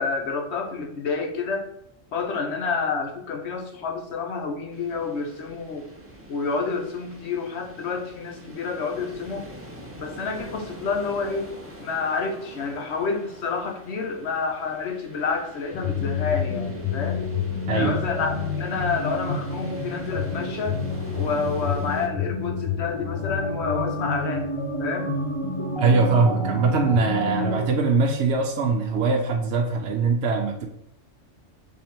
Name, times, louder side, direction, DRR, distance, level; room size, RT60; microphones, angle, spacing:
voice 1, 0.0-1.7 2.1-5.8 6.3-9.5 9.9-11.5 11.8-17.2 17.7-20.8 21.1-24.5 24.8-25.1, left 4 dB, 65° left, 3 dB, 1.0 m, -29 dB
sound 1, 4.7-22.1, right 1 dB, 15° right, 0.6 m, -44 dB
sound 2, 15.7-27.7, left 4 dB, 40° left, 0.4 m, -29 dB
voice 2, 17.7-18.0 25.8-30.7, right 4 dB, 70° right, 1 dB, 0.8 m, -22 dB
3.5 x 3.3 x 4.3 m, 0.76 s
omnidirectional pair, 1.2 m